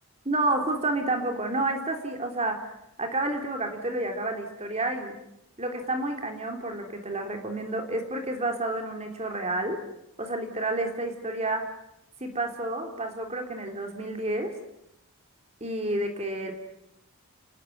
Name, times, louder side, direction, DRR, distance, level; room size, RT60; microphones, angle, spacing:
voice 1, 0.3-5.1 5.6-9.8 10.2-11.6 12.2-14.5 15.6-16.5, right 2 dB, 30° right, 4 dB, 3.5 m, -30 dB
29.5 x 20.5 x 9.4 m, 0.85 s
head